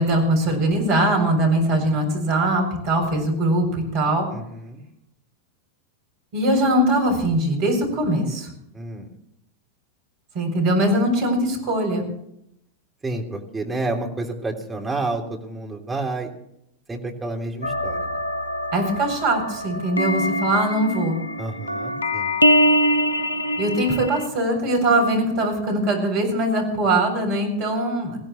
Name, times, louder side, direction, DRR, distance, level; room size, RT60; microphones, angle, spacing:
voice 1, 0.0-4.3 6.3-8.5 10.3-12.1 18.7-21.2 23.6-28.2, right 1 dB, 45° right, 3 dB, 7.5 m, -21 dB
voice 2, 4.3-4.8 8.7-9.1 13.0-16.3 16.9-18.2 21.4-22.3, right 2 dB, 10° right, 1 dB, 3.1 m, -30 dB
sound 1, 17.6-24.3, equal, 80° left, 0.8 m, -23 dB
21.0 x 16.5 x 3.2 m, 0.76 s
figure-of-eight pair, 90°, 0 cm